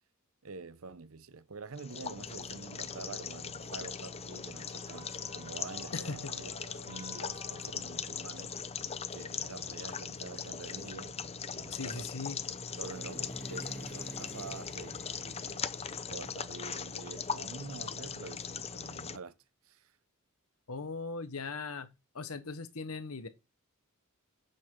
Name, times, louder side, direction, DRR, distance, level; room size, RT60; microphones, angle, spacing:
voice 1, 0.4-6.5 6.8-8.6 9.1-12.1 12.8-19.3 19.6-19.9, right 4 dB, 70° right, 0.8 m, -47 dB
sound 1, 1.7-19.2, left 6 dB, 30° left, 0.6 m, -40 dB
sound 2, 1.9-8.9, right 2 dB, 30° right, 1.7 m, -55 dB
voice 2, 5.9-6.3 11.7-12.4 20.7-21.9 22.1-23.3, left 4 dB, 85° left, 1.2 m, -39 dB
sound 3, 11.1-18.6, right 1 dB, 5° left, 2.1 m, -51 dB
9.3 x 8.5 x 3.8 m
head